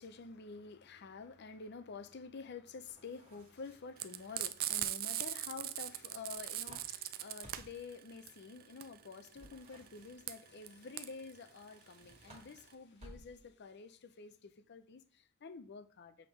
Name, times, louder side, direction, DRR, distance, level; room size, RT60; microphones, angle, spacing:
voice 1, 0.0-16.2, left 4 dB, 55° left, 0.6 m, -49 dB
sound 1, 2.8-4.1 6.1-7.9 9.3-10.5 11.7-13.6, right 1 dB, 30° right, 1.5 m, -59 dB
Frying (food), 4.0-12.7, right 13 dB, 45° right, 0.4 m, -40 dB
7.2 x 3.6 x 4.4 m
head